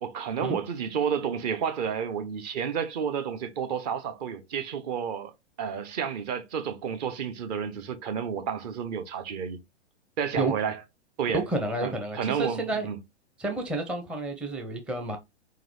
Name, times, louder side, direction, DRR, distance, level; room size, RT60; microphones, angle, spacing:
voice 1, 0.0-5.3 5.6-9.6 10.2-10.8 11.2-11.4 11.8-13.0, right 7 dB, 35° right, 0.8 m, -31 dB
voice 2, 11.3-12.9 13.4-15.2, right 2 dB, 5° right, 0.6 m, -30 dB
4.5 x 3.8 x 3.1 m
figure-of-eight pair, 105°, 35 cm